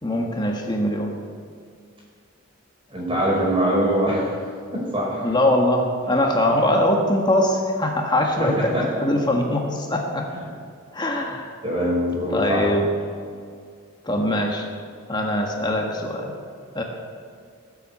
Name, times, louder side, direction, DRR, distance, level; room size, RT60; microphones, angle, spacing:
voice 1, 0.0-1.2 5.2-8.8 9.0-10.3 10.9-11.5 12.3-12.9 14.0-14.6 15.1-16.3 16.7-16.8, left 1 dB, 20° left, 1 dB, 1.5 m, -22 dB
voice 2, 2.9-4.4 4.7-5.3 6.5-6.7 8.4-8.8 10.3-10.4 11.6-12.7, equal, 25° right, -3 dB, 4.7 m, -23 dB
19.0 x 7.9 x 8.5 m, 2.3 s
head